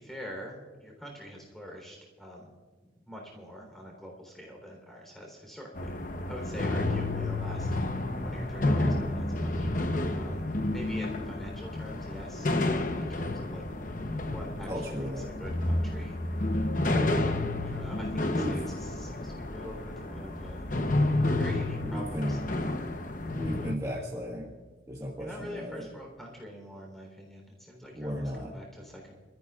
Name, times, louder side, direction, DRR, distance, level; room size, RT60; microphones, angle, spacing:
voice 1, 0.0-2.5 2.8-5.9 6.2-7.8 8.2-9.7 10.1-13.6 14.2-16.2 17.6-20.7 21.4-22.4 25.2-29.1, equal, ahead, 0 dB, 3.6 m, -45 dB
sound 1, 5.7-23.8, left 2 dB, 45° left, 0.9 m, -30 dB
voice 2, 14.7-15.3 16.8-17.2 18.3-18.6 21.8-22.5 23.3-24.5 24.9-25.9 27.9-28.5, equal, 20° right, -2 dB, 1.5 m, -35 dB
27.0 x 14.0 x 2.4 m, 1.4 s
head